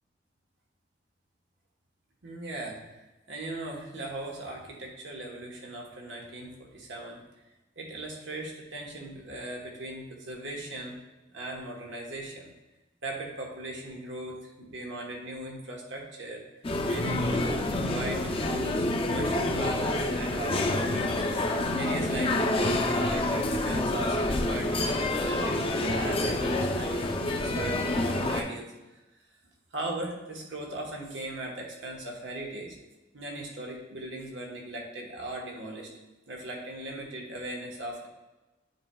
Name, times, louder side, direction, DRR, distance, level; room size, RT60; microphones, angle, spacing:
voice 1, 2.2-3.0 3.3-7.2 7.8-11.0 11.3-12.5 13.0-16.4 16.9-28.7 29.7-32.8 33.1-35.9 36.3-38.1, right 1 dB, 85° right, -1 dB, 1.2 m, -38 dB
sound 1, 16.6-28.4, left 1 dB, 30° left, 0.5 m, -28 dB
9.8 x 4.4 x 2.3 m, 1.1 s
head